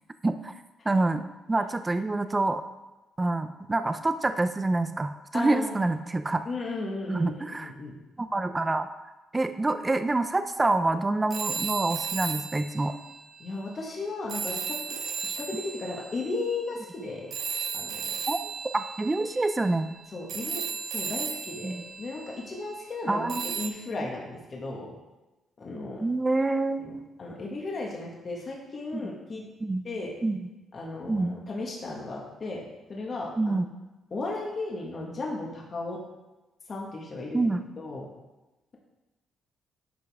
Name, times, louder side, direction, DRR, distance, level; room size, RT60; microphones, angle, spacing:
voice 1, 0.2-0.5 0.8-2.6 3.2-6.4 7.1-7.7 8.2-12.9 18.3-18.4 18.7-19.9 21.6-21.8 23.1-23.5 26.0-27.1 28.9-29.0 29.6-29.8 30.2-30.4 31.1-31.4 33.4-33.6 37.3-37.6, right 2 dB, 20° right, 9 dB, 0.5 m, -27 dB
voice 2, 5.3-5.8 6.4-8.0 13.4-15.0 15.2-17.3 17.7-18.1 20.1-20.6 20.9-24.9 25.6-26.0 26.8-29.4 29.8-30.1 30.7-32.6 32.9-33.5 34.1-36.0 36.7-37.5 37.8-38.1, left 2 dB, 40° left, -2 dB, 1.7 m, -35 dB
sound 1, 11.3-13.8 14.3-22.8 23.3-23.7, right 6 dB, 60° right, 0.8 m, -35 dB
10.5 x 5.6 x 3.6 m, 1.1 s
cardioid pair, 90°, 0 cm